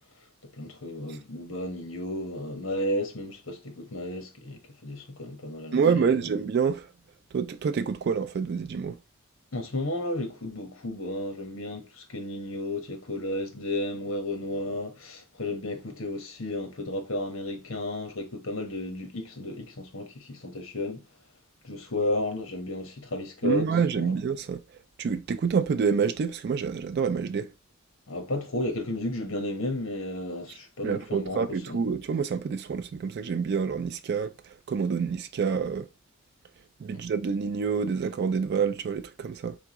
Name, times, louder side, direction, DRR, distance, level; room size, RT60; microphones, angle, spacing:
voice 1, 0.5-6.2 9.5-21.0 21.6-23.7 23.9-24.1 28.1-31.8 36.9-37.0, left 1 dB, 65° left, 1.2 m, -33 dB
voice 2, 5.7-6.9 7.3-9.0 23.4-24.6 25.0-27.5 30.8-35.9 36.8-39.6, right 6 dB, 50° right, 0.3 m, -27 dB
3.7 x 3.5 x 2.9 m
head